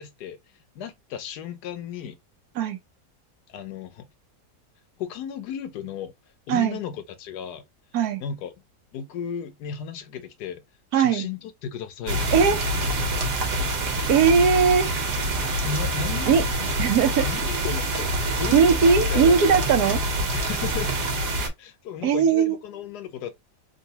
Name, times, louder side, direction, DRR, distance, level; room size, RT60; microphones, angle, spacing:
voice 1, 0.0-2.2 3.5-4.1 5.0-6.1 6.5-7.7 8.2-8.5 8.9-10.6 10.9-12.6 15.6-16.7 16.9-19.4 20.3-21.0 21.6-23.3, left 8 dB, 80° left, 1.2 m, -35 dB
voice 2, 10.9-11.3 12.3-12.6 14.1-14.9 16.3-16.4 16.8-17.2 18.5-20.0 22.0-22.6, right 6 dB, 70° right, 1.3 m, -19 dB
sound 1, 12.1-21.5, right 1 dB, 85° right, 1.6 m, -26 dB
3.8 x 2.3 x 2.7 m
omnidirectional pair, 1.7 m